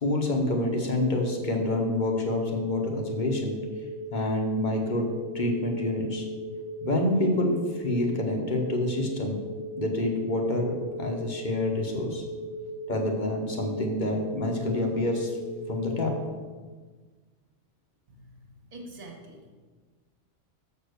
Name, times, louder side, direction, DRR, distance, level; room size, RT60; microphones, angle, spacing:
voice 1, 0.0-3.6 4.1-5.1 5.3-6.3 6.8-9.4 9.8-12.2 12.9-15.4 15.7-16.1, left 2 dB, 40° left, 1 dB, 1.2 m, -27 dB
sound 1, 0.9-16.3, right 1 dB, 80° right, 1.1 m, -38 dB
voice 2, 18.7-19.5, right 1 dB, 40° right, 1 dB, 1.6 m, -45 dB
7.2 x 4.8 x 6.6 m, 1.4 s
omnidirectional pair, 1.3 m